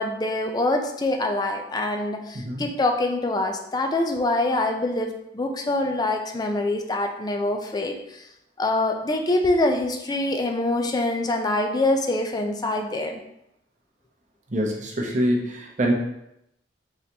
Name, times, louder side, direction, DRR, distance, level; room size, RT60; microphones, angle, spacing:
voice 1, 0.0-8.3 8.6-13.2, left 2 dB, 20° left, 4 dB, 0.4 m, -25 dB
voice 2, 2.3-2.7 14.5-15.9, equal, 40° right, -1 dB, 0.7 m, -25 dB
3.9 x 2.9 x 3.3 m, 0.81 s
head